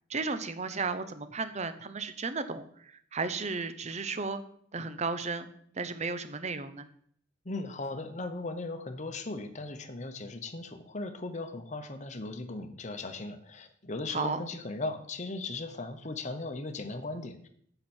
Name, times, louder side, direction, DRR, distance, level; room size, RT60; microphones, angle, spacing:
voice 1, 0.1-4.4 4.7-5.5 5.7-6.9 14.1-14.4, right 4 dB, 35° right, 11 dB, 0.7 m, -34 dB
voice 2, 7.4-17.5, left 2 dB, 40° left, 7 dB, 1.0 m, -37 dB
10.0 x 7.9 x 4.4 m, 0.62 s
head